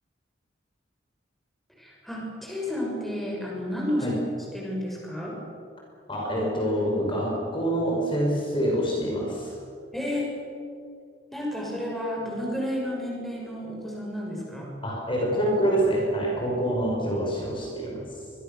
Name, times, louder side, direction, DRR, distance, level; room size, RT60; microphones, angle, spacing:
voice 1, 1.7-4.1 4.5-5.4 9.9-10.3 11.3-14.7, left 1 dB, ahead, -3 dB, 6.7 m, -31 dB
voice 2, 6.1-9.5 14.8-18.0, right 1 dB, 25° left, -2 dB, 6.0 m, -26 dB
27.0 x 23.5 x 7.1 m, 2.3 s
head